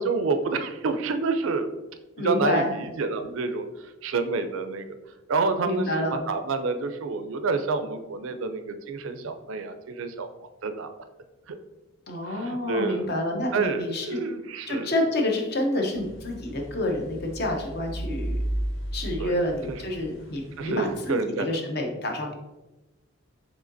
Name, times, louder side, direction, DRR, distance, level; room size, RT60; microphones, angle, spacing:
voice 1, 0.0-1.7 2.2-4.9 5.3-10.3 10.6-10.9 11.5-11.6 12.3-13.1 13.5-14.9 19.2-19.4 19.7-19.8 20.6-21.6, right 4 dB, 70° right, 8 dB, 0.4 m, -28 dB
voice 2, 2.2-2.7 5.6-6.1 12.1-14.2 14.7-18.4 18.9-21.2 21.4-22.3, left 1 dB, 50° left, 2 dB, 0.7 m, -28 dB
sound 1, 15.9-21.0, right 1 dB, 65° left, 1.0 m, -34 dB
4.9 x 3.8 x 2.6 m, 1.1 s
head